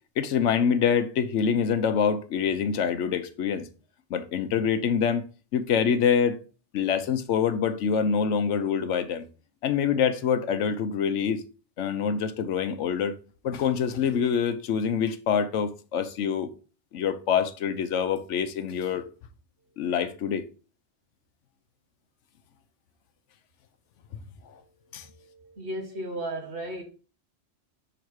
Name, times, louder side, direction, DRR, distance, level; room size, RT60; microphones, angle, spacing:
voice 1, 0.2-3.7 4.1-5.2 5.5-6.4 6.7-9.3 9.6-11.4 11.8-13.2 13.4-16.5 16.9-19.0 19.8-20.4 24.9-25.1, left 7 dB, 85° left, 1.0 m, -25 dB
voice 2, 19.6-19.9 24.5-26.8, right 1 dB, 65° right, 1.7 m, -37 dB
5.9 x 3.9 x 4.6 m
omnidirectional pair, 1.2 m